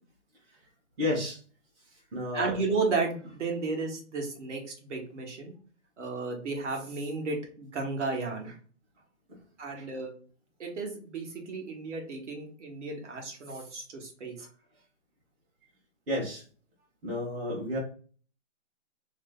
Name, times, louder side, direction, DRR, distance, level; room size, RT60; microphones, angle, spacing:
voice 1, 1.0-1.4 2.1-2.5 14.4-14.5 16.1-16.4 17.0-17.8, left 1 dB, 55° right, -3 dB, 1.4 m, -31 dB
voice 2, 2.3-5.5 6.0-8.6 9.6-10.1 10.6-14.4, right 3 dB, 70° right, 1 dB, 1.4 m, -33 dB
3.1 x 2.1 x 3.7 m, 0.42 s
hypercardioid pair, 165°, 37 cm